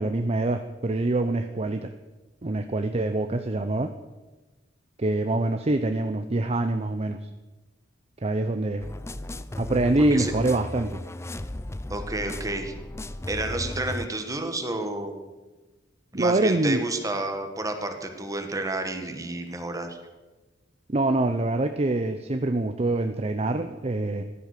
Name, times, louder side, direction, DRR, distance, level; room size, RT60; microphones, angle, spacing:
voice 1, 0.0-1.9 2.4-3.9 5.0-7.3 8.2-8.8 9.6-10.9 16.1-16.8 20.9-24.2, right 2 dB, 35° right, 7 dB, 0.6 m, -25 dB
sound 1, 8.8-14.1, left 1 dB, 15° left, 0.6 m, -35 dB
voice 2, 10.0-10.3 11.9-12.7 13.3-15.2 16.1-20.0, right 2 dB, 20° right, 5 dB, 1.7 m, -30 dB
15.0 x 12.5 x 6.7 m, 1.2 s
head